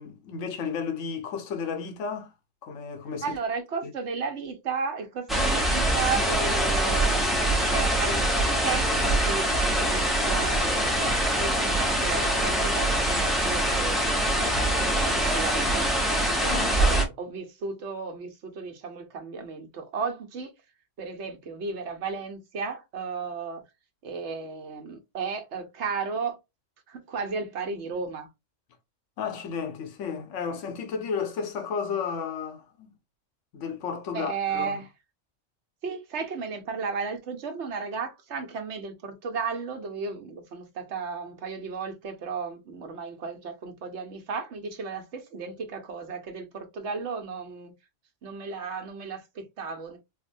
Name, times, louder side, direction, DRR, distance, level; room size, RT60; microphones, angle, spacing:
voice 1, 0.0-2.3 2.6-3.2 16.4-17.1 29.2-32.9 33.5-34.8, left 6 dB, 75° left, 1.1 m, -33 dB
voice 2, 3.2-14.0 14.4-20.5 21.0-23.6 24.0-26.4 26.9-28.3 34.1-34.9 35.8-47.7 48.2-50.0, right 5 dB, 65° right, 1.1 m, -34 dB
sound 1, 5.3-17.1, right 1 dB, ahead, 0.7 m, -24 dB
4.6 x 2.1 x 2.5 m
omnidirectional pair, 1.3 m